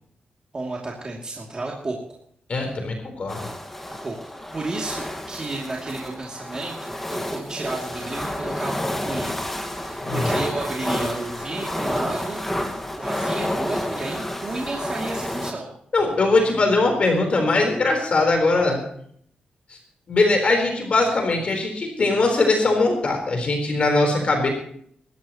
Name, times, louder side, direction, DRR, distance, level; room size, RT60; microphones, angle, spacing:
voice 1, 0.5-2.2 2.6-2.7 3.9-4.2 4.5-9.3 9.7-12.4 13.0-15.7, right 2 dB, 30° right, -3 dB, 2.7 m, -32 dB
voice 2, 2.5-3.5 10.0-10.2 15.9-18.8 20.1-24.5, left 3 dB, 50° left, 3 dB, 4.1 m, -21 dB
sound 1, 3.3-15.5, left 1 dB, 10° left, 1.8 m, -30 dB
23.5 x 13.5 x 3.1 m, 0.64 s
cardioid pair, 105°, 3 cm